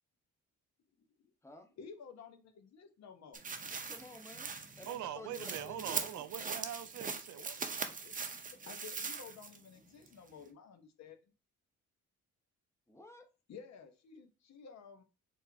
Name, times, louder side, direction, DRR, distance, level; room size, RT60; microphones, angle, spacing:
voice 1, 1.8-3.4 7.8-8.2 8.6-11.2 13.5-15.0, left 6 dB, 60° left, 0.9 m, -53 dB
sound 1, 3.3-9.7 10.1-10.2, right 5 dB, 25° right, 0.7 m, -41 dB
voice 2, 3.8-6.2 12.9-13.3, left 2 dB, 10° left, 0.9 m, -52 dB
voice 3, 4.9-7.6, right 11 dB, 75° right, 0.5 m, -43 dB
4.6 x 3.3 x 2.7 m
cardioid pair, 90°, 30 cm